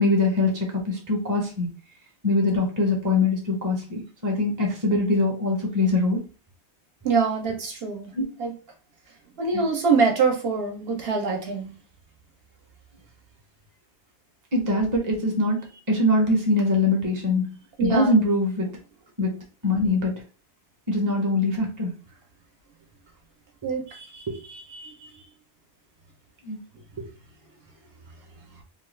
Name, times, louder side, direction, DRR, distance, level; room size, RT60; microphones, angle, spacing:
voice 1, 0.0-1.7 2.2-6.2 8.1-8.3 9.5-9.6 14.5-15.6 15.9-17.5 17.8-18.7 19.2-19.4 19.6-20.2 20.9-21.9 24.3-24.4 26.4-26.6, left 2 dB, 20° right, 0 dB, 0.6 m, -23 dB
voice 2, 7.0-8.1 8.4-8.5 9.4-11.7 17.8-18.1 23.6-25.2, right 5 dB, 65° right, 2 dB, 0.9 m, -25 dB
2.8 x 2.3 x 3.1 m, 0.36 s
omnidirectional pair, 1.2 m